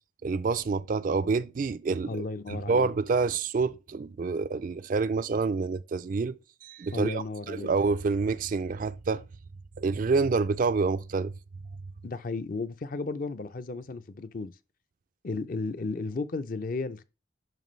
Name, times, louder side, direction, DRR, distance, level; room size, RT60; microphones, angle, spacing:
voice 1, 0.2-2.2 2.5-9.2 9.8-11.3, right 4 dB, 40° right, 0.3 m, -28 dB
voice 2, 2.1-2.9 6.9-7.7 12.0-14.5 15.2-17.0, left 3 dB, 45° left, 0.5 m, -34 dB
9.1 x 5.9 x 3.1 m
head